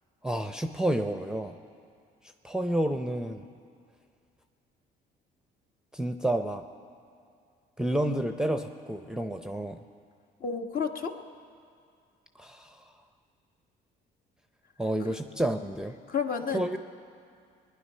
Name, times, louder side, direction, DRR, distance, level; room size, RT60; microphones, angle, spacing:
voice 1, 0.2-1.5 2.4-3.5 5.9-6.6 7.8-9.8 12.4-12.7 14.8-16.0 16.5-16.8, right 1 dB, 5° right, 7 dB, 0.7 m, -30 dB
voice 2, 10.4-11.2 16.1-16.8, left 6 dB, 45° left, 4 dB, 1.4 m, -31 dB
20.5 x 10.5 x 5.6 m, 2.3 s
supercardioid pair, 75°, 21 cm